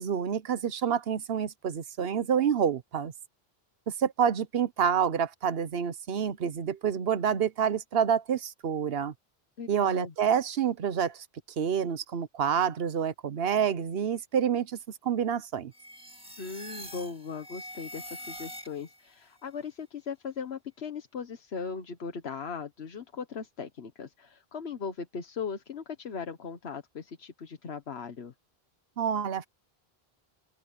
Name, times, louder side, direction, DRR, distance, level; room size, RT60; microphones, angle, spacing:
voice 1, 0.0-3.1 4.0-9.1 9.7-11.2 11.6-15.7 29.0-29.5, right 8 dB, 75° right, 1.1 m, -28 dB
voice 2, 9.6-10.1 16.4-28.3, left 5 dB, 85° left, 1.5 m, -38 dB
sound 1, 15.7-19.1, equal, 5° right, 2.0 m, -44 dB
open air
omnidirectional pair, 1.0 m